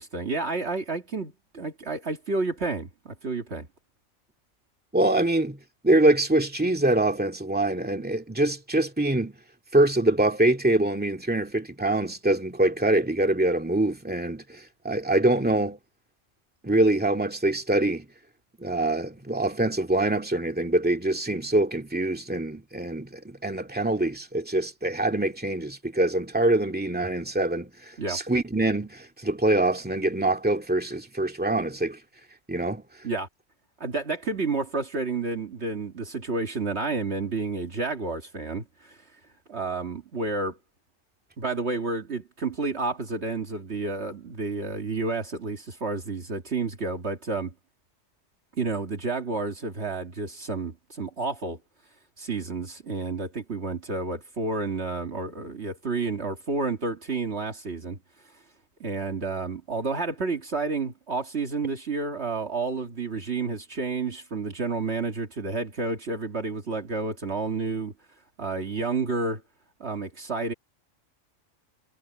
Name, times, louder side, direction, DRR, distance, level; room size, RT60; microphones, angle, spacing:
voice 1, 0.0-3.7 28.0-28.2 33.0-33.3 33.8-39.0 39.5-40.6 41.4-47.5 48.6-51.6 52.2-58.0 58.8-67.9 68.4-69.4 69.8-70.5, right 3 dB, 55° right, 2.1 m, -30 dB
voice 2, 4.9-5.6 5.8-9.4 9.7-15.8 16.6-18.1 18.6-32.0 32.5-32.8, right 2 dB, 5° right, 2.2 m, -24 dB
omnidirectional pair, 1.4 m